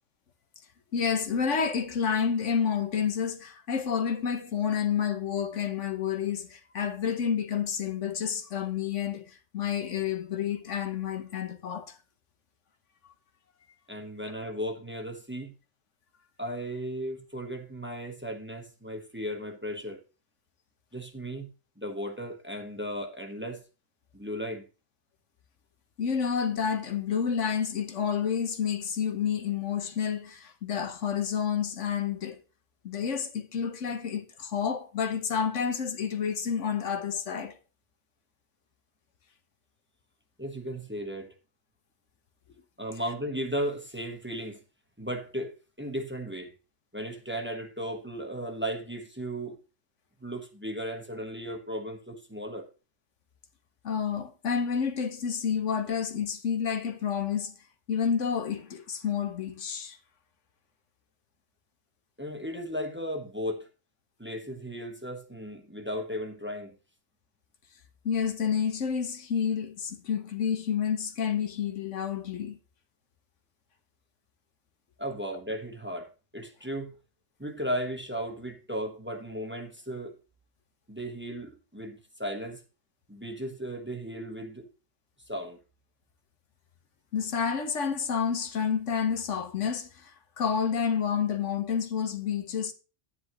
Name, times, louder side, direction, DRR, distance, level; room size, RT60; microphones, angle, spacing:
voice 1, 0.9-12.0 26.0-32.4 32.8-37.6 53.8-57.5 57.9-60.0 68.0-72.6 87.1-90.1 90.4-92.7, left 7 dB, 80° left, 1.4 m, -29 dB
voice 2, 13.9-15.5 16.4-20.0 20.9-21.5 21.8-23.6 24.1-24.6 40.4-41.3 42.8-44.6 45.0-45.5 45.8-46.5 46.9-49.6 50.2-52.6 62.2-63.7 64.2-66.7 75.0-76.9 77.4-80.1 80.9-82.6 83.1-84.7 85.3-85.6, equal, 10° right, 1.3 m, -35 dB
10.0 x 9.8 x 3.1 m
omnidirectional pair, 1.2 m